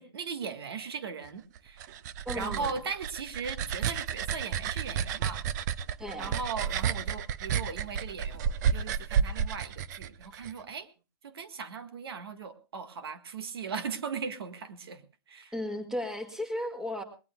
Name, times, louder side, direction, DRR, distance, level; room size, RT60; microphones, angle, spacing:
voice 1, 0.0-1.9 2.3-5.4 6.2-10.9 11.2-15.5, right 5 dB, 75° right, 10 dB, 1.7 m, -38 dB
sound 1, 1.6-10.5, right 8 dB, 45° right, 0.7 m, -31 dB
voice 2, 2.3-2.7 6.0-6.4 15.5-17.0, left 1 dB, 5° right, 7 dB, 1.9 m, -35 dB
20.5 x 18.5 x 2.3 m, 0.32 s
hypercardioid pair, 145°, 13 cm